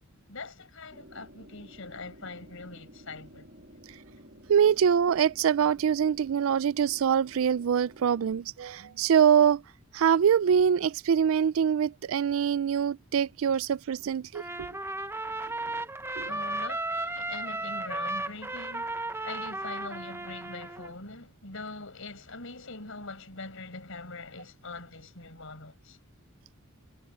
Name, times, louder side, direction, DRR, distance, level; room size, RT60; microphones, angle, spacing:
voice 1, 0.3-3.5 16.3-19.0 19.2-26.0, left 3 dB, 65° left, 7.0 m, -43 dB
sound 1, 0.9-8.4, equal, 45° right, 3.6 m, -53 dB
voice 2, 4.5-9.6 9.9-14.7 16.2-16.3, right 8 dB, 65° right, 0.4 m, -24 dB
Trumpet, 14.4-20.9, right 2 dB, 10° right, 0.8 m, -34 dB
head